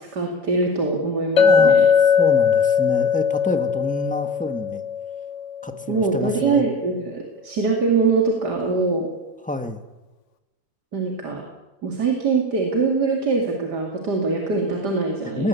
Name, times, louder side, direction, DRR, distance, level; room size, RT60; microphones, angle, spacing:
voice 1, 0.0-1.9 5.9-9.1 10.9-11.4 11.8-15.5, right 4 dB, 80° right, 1 dB, 3.3 m, -23 dB
Chink clink, 1.4-5.8, left 7 dB, 50° left, 1.3 m, -19 dB
voice 2, 1.4-1.8 2.2-4.8 5.6-6.7 9.4-9.9 15.4-15.5, left 1 dB, 5° left, 7 dB, 1.5 m, -28 dB
20.5 x 19.0 x 8.4 m, 1.1 s
omnidirectional pair, 1.8 m